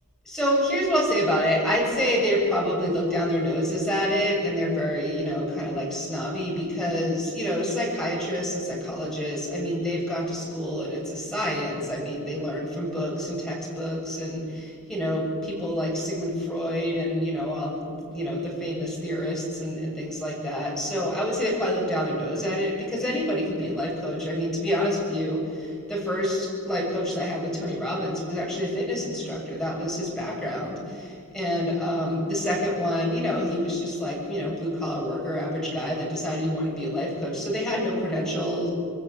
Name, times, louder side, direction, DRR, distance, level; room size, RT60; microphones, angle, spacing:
voice 1, 0.2-38.7, equal, ahead, -4 dB, 7.9 m, -27 dB
27.5 x 20.5 x 8.5 m, 2.3 s
head